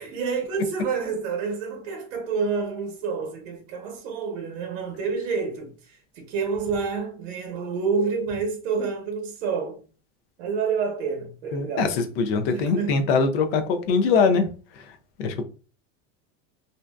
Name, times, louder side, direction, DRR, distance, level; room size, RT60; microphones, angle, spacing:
voice 1, 0.0-9.8 10.4-12.0 12.5-13.1, right 5 dB, 75° right, 0.9 m, -28 dB
voice 2, 11.5-15.4, left 4 dB, 55° left, 0.4 m, -23 dB
2.6 x 2.1 x 2.3 m
supercardioid pair, 180°, 37 cm